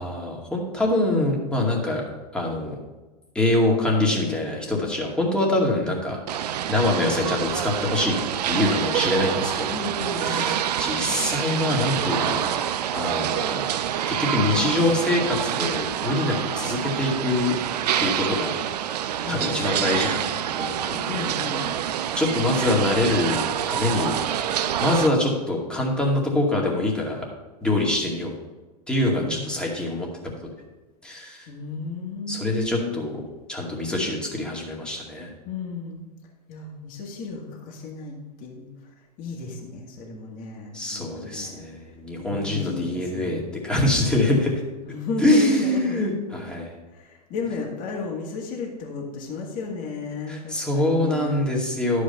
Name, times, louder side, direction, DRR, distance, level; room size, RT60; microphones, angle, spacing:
voice 1, 0.0-2.0 2.3-2.8 3.3-6.2 6.7-8.2 8.5-9.9 10.2-12.5 12.9-13.7 14.1-17.5 18.0-18.5 19.3-21.2 22.2-24.2 24.8-27.3 27.6-28.3 28.9-30.3 31.0-31.5 32.3-33.2 33.5-35.3 40.7-44.6 45.2-46.7 50.3-52.0, left 1 dB, 5° left, -2 dB, 2.2 m, -24 dB
sound 1, 6.3-25.1, right 10 dB, 75° right, 0.6 m, -27 dB
voice 2, 9.7-10.6 19.2-19.6 21.1-21.7 29.2-29.4 31.5-33.0 35.5-36.0 36.5-38.7 39.2-41.6 42.2-43.4 44.8-46.0 46.9-51.6, left 4 dB, 40° left, -2 dB, 2.1 m, -33 dB
11.5 x 5.0 x 5.4 m, 1.1 s
hypercardioid pair, 105°, 21 cm